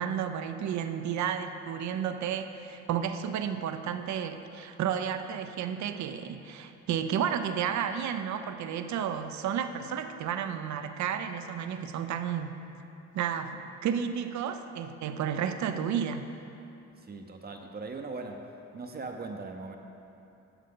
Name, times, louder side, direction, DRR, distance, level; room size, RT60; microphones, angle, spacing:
voice 1, 0.0-12.5 13.1-16.3, right 8 dB, 70° right, 8 dB, 0.6 m, -32 dB
voice 2, 17.0-18.4 18.7-19.8, right 3 dB, 30° right, 3 dB, 0.7 m, -39 dB
11.5 x 6.5 x 3.8 m, 2.9 s
cardioid pair, 90°, 30 cm